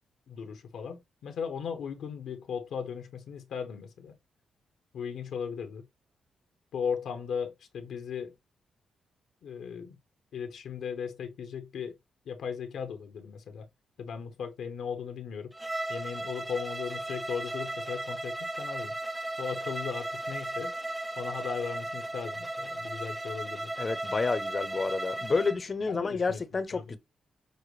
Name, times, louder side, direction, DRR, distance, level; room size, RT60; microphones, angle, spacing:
voice 1, 0.3-4.1 4.9-5.8 6.7-8.3 9.4-10.0 10.3-12.0 12.3-13.7 14.0-15.5 15.9-18.9 19.4-20.7 21.2-23.7 25.9-26.4 26.7-27.0, left 6 dB, 80° left, 0.8 m, -37 dB
Bowed string instrument, 15.5-25.6, right 1 dB, 15° right, 0.4 m, -36 dB
voice 2, 23.8-27.0, left 4 dB, 35° left, 0.7 m, -29 dB
6.4 x 2.2 x 3.1 m
cardioid pair, 80°, 0 cm